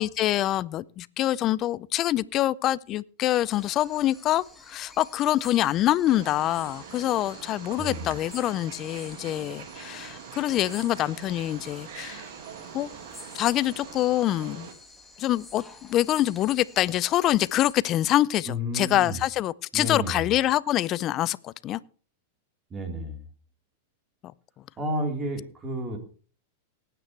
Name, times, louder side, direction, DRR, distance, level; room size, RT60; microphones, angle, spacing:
voice 1, 0.0-12.3 12.7-12.9 13.3-14.7 15.2-21.8, left 14 dB, 40° left, 0.5 m, -25 dB
sound 1, 3.4-17.7, left 2 dB, 5° left, 2.2 m, -50 dB
Wild animals, 6.0-14.7, right 8 dB, 65° right, 2.2 m, -43 dB
voice 2, 7.8-8.2 18.5-19.2 19.7-20.3 22.7-23.2 24.8-26.0, equal, 25° right, 4.0 m, -31 dB
18.5 x 9.3 x 3.3 m
hypercardioid pair, 115°, 0 cm